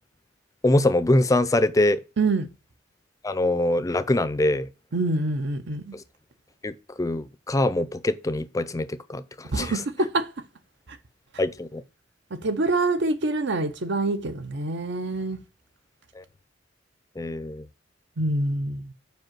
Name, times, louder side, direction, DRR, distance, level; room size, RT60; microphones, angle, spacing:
voice 1, 0.6-2.0 3.2-4.7 6.6-9.2 9.6-9.8 11.4-11.8 16.2-16.3 17.2-17.6, left 1 dB, 15° left, 0.4 m, -23 dB
voice 2, 2.2-2.5 4.9-6.0 9.5-10.3 12.4-15.4 18.2-18.9, right 2 dB, 65° right, 0.7 m, -25 dB
5.3 x 4.7 x 5.9 m
head